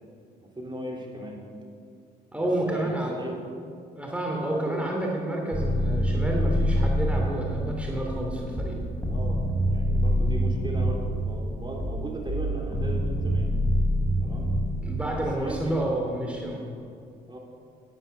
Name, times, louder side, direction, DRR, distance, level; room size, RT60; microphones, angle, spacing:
voice 1, 0.4-1.4 2.4-3.3 4.5-4.8 9.1-9.4 9.7-13.5 14.2-14.5 15.4-15.7 17.3-17.4, right 1 dB, 25° right, -1 dB, 3.2 m, -37 dB
voice 2, 2.3-3.2 3.9-8.8 14.8-16.6, right 1 dB, 5° right, -1 dB, 2.8 m, -29 dB
sound 1, 5.5-15.6, equal, 10° left, 4.0 m, -26 dB
11.0 x 10.5 x 6.6 m, 2.3 s
hypercardioid pair, 55°, 20 cm